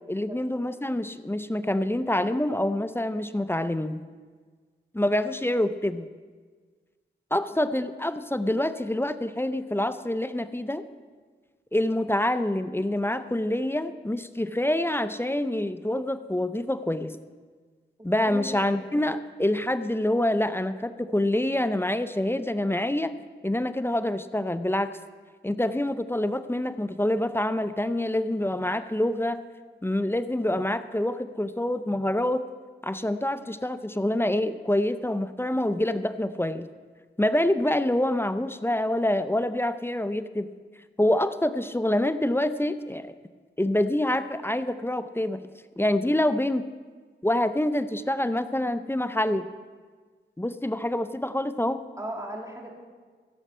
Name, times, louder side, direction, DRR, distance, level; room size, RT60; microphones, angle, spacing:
voice 1, 0.1-4.0 4.9-6.1 7.3-10.8 11.7-17.2 18.0-23.1 23.4-25.0 25.4-29.4 29.8-32.4 32.8-36.7 37.2-40.5 41.0-43.1 43.6-45.4 45.8-46.7 47.2-49.5 50.4-51.8, left 1 dB, 10° left, 12 dB, 0.6 m, -26 dB
voice 2, 18.0-18.8 52.0-52.7, right 1 dB, 15° right, 0 dB, 2.7 m, -37 dB
15.5 x 7.2 x 5.6 m, 1.5 s
cardioid pair, 45°, 20 cm